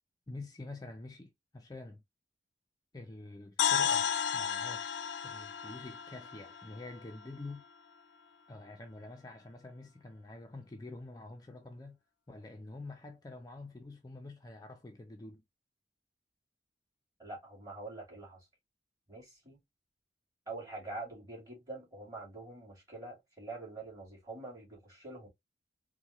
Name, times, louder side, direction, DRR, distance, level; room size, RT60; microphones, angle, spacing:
voice 1, 0.3-2.0 2.9-7.7 8.5-12.0 12.3-15.5, left 2 dB, 20° left, 0.4 m, -47 dB
sound 1, 3.6-7.5, left 8 dB, 85° left, 0.4 m, -33 dB
voice 2, 17.2-18.5 19.1-19.6 20.5-25.3, right 2 dB, 20° right, 2.5 m, -45 dB
4.3 x 2.2 x 2.8 m
head